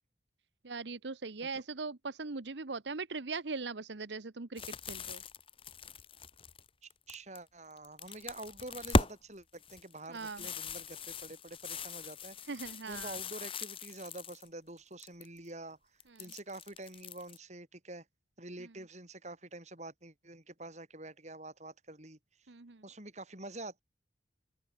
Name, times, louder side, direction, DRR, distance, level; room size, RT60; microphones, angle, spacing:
voice 1, 0.6-5.2 10.1-10.4 12.5-13.1 22.5-22.8, right 4 dB, 80° right, 1.0 m, -40 dB
sound 1, 4.6-7.4 7.8-9.1 9.5-14.5 14.8-15.4 16.0-17.4, left 2 dB, 30° left, 2.4 m, -38 dB
voice 2, 6.8-12.6 12.9-15.8 16.2-18.1 18.4-22.5 22.8-23.8, right 2 dB, 40° right, 7.5 m, -47 dB
open air
head